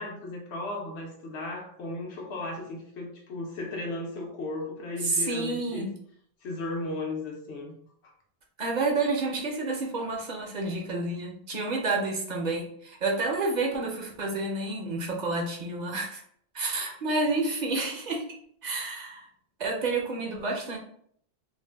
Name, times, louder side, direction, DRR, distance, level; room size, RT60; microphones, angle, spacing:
voice 1, 0.0-5.9 6.4-7.7 16.7-16.9, left 2 dB, 80° left, 0 dB, 1.0 m, -35 dB
voice 2, 5.0-5.9 8.6-16.2 16.5-18.3 18.6-19.3 19.6-20.8, right 3 dB, 50° right, 0 dB, 0.6 m, -29 dB
2.6 x 2.1 x 3.3 m, 0.65 s
omnidirectional pair, 1.1 m